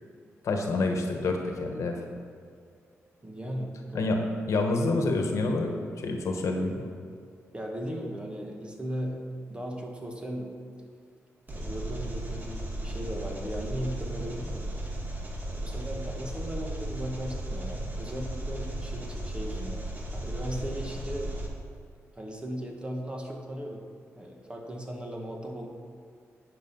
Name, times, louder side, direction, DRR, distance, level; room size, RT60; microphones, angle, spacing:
voice 1, 0.4-2.1 3.9-4.2 4.5-5.7 6.0-6.9, left 2 dB, 70° left, 3 dB, 1.3 m, -27 dB
voice 2, 3.2-4.2 7.5-10.5 11.5-14.7 15.5-19.8 20.1-21.3 22.2-23.8 24.2-25.7, equal, 20° right, 1 dB, 1.6 m, -37 dB
Engine, 11.5-21.5, right 1 dB, 35° right, 2.0 m, -35 dB
10.0 x 6.5 x 5.4 m, 2.3 s
cardioid pair, 80°, 5 cm